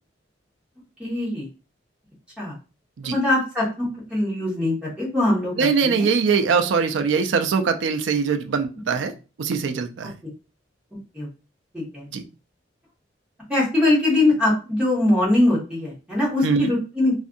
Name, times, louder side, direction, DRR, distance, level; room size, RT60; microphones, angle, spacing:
voice 1, 1.0-1.5 2.4-2.5 3.1-5.5 5.8-6.1 11.1-11.3 11.7-12.1 13.5-17.1, left 2 dB, 5° right, -6 dB, 1.2 m, -22 dB
voice 2, 5.6-9.1 9.4-10.1 12.1-12.2 16.4-16.7, right 5 dB, 80° right, 6 dB, 0.4 m, -22 dB
2.6 x 2.4 x 2.5 m, 0.32 s
head